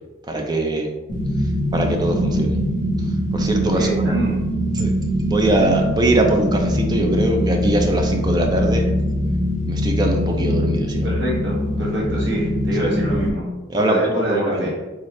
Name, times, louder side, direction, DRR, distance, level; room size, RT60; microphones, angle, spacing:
voice 1, 0.3-0.9 1.7-2.6 3.3-3.9 4.7-4.9 5.2-8.8 9.7-11.1 12.8-12.9 13.7-14.7, right 2 dB, 20° right, 2 dB, 0.5 m, -21 dB
sound 1, 1.1-13.3, equal, 55° left, 1.4 m, -22 dB
voice 2, 3.8-4.5 11.0-14.7, right 1 dB, 60° right, -5 dB, 1.4 m, -26 dB
4.2 x 3.7 x 3.2 m, 1.2 s
head